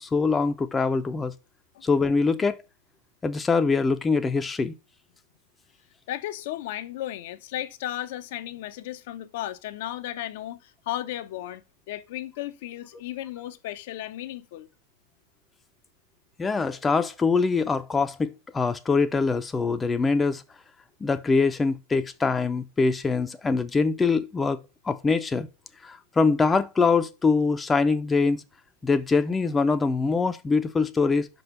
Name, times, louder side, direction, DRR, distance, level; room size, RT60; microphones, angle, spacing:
voice 1, 0.0-1.3 1.8-2.6 3.2-4.7 16.4-20.4 21.0-24.6 24.9-25.5 25.8-28.4 28.8-31.3, left 4 dB, 15° left, 0.6 m, -23 dB
voice 2, 6.1-11.6 11.9-14.7, left 13 dB, 50° left, 0.6 m, -35 dB
5.7 x 5.3 x 5.7 m
figure-of-eight pair, 90°, 0 cm